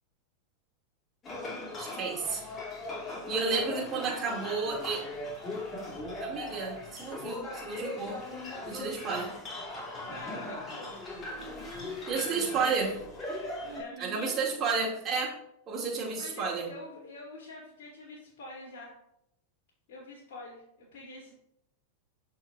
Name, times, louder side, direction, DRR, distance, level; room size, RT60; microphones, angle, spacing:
sound 1, 1.2-13.8, left 2 dB, 25° left, 2.6 m, -39 dB
voice 1, 1.8-2.4 3.3-5.1 6.2-8.2 8.7-9.3 12.1-13.0 14.0-15.3 15.7-16.7, right 4 dB, 25° right, -3 dB, 2.3 m, -31 dB
voice 2, 10.0-11.0 13.7-14.5 16.1-18.9 19.9-21.3, left 2 dB, 50° left, -8 dB, 2.8 m, -46 dB
13.0 x 4.8 x 2.5 m, 0.76 s
figure-of-eight pair, 90°, 0 cm